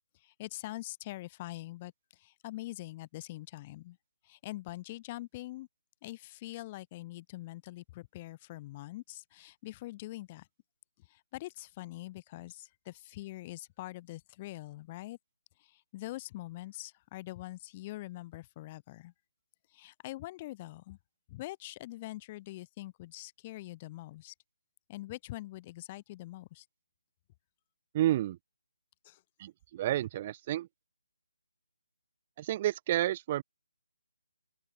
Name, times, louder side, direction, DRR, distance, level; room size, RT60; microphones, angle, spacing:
voice 1, 0.1-4.0 4.2-5.7 6.0-10.5 11.0-15.2 15.6-19.1 19.7-21.0 21.3-24.3 24.9-26.7 29.0-29.2, left 17 dB, 25° left, 4.0 m, -44 dB
voice 2, 27.9-28.4 29.4-30.7 32.4-33.4, right 13 dB, 30° right, 0.6 m, -30 dB
open air
figure-of-eight pair, 155°, 0 cm